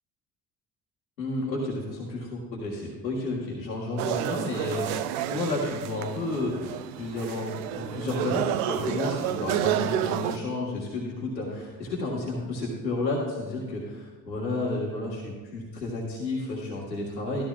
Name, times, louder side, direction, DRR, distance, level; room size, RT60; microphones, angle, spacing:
voice 1, 1.2-5.0 5.3-17.4, left 2 dB, 85° left, -3 dB, 1.4 m, -31 dB
sound 1, 4.0-10.4, right 11 dB, 60° right, 0.6 m, -30 dB
13.0 x 12.5 x 2.3 m, 1.3 s
figure-of-eight pair, 60°, 50 cm